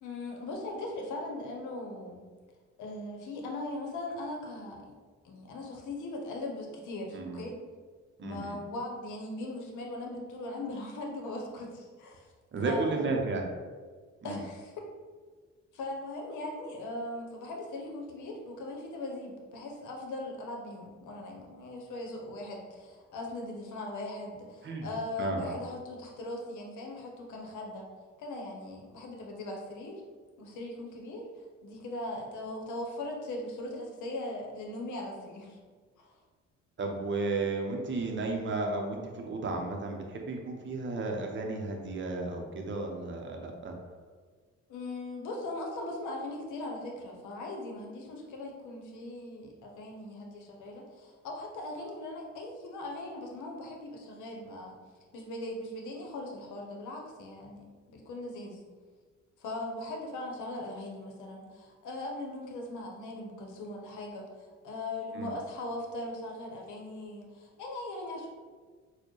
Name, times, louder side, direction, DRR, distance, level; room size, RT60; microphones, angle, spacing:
voice 1, 0.0-2.2 2.8-4.9 5.2-7.5 8.2-12.3 12.6-13.1 14.2-14.7 15.7-27.9 28.2-30.0 30.4-31.3 31.6-35.6 36.0-36.1 44.7-54.8 55.1-58.6 59.4-68.3, left 2 dB, 75° left, 0 dB, 0.8 m, -39 dB
voice 2, 8.2-8.6 12.5-13.5 14.2-14.4 24.6-24.9 25.2-25.6 36.8-43.7 65.1-65.3, right 3 dB, 40° right, 2 dB, 0.6 m, -33 dB
4.2 x 2.2 x 3.1 m, 1.5 s
cardioid pair, 90°, 30 cm